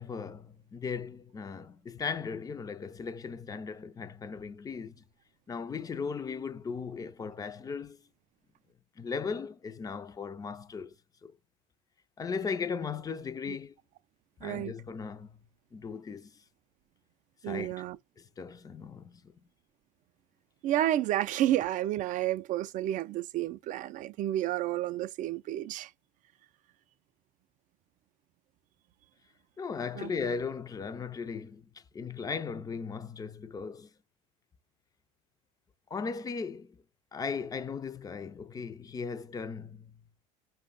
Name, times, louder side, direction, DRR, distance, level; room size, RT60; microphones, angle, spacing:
voice 1, 0.0-5.0 5.5-8.0 9.0-10.9 11.2-11.4 12.2-13.7 14.4-15.4 15.7-16.4 17.4-17.8 18.2-19.3 29.6-33.9 35.9-36.8 37.1-40.0, left 5 dB, 20° left, 0.4 m, -37 dB
voice 2, 14.4-14.7 17.4-18.0 20.6-25.9 30.0-30.1, right 13 dB, 45° right, 0.4 m, -30 dB
5.0 x 2.1 x 3.6 m
supercardioid pair, 100°, 18 cm